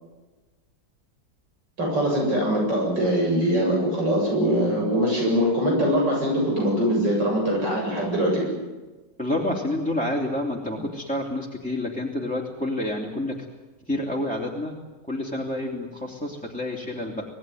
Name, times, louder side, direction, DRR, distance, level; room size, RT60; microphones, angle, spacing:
voice 1, 1.8-8.4, equal, 85° right, -1 dB, 8.4 m, -22 dB
voice 2, 9.2-13.4 13.9-14.7 15.1-17.3, left 1 dB, 5° left, -2 dB, 3.1 m, -28 dB
27.0 x 19.0 x 9.4 m, 1.2 s
omnidirectional pair, 1.9 m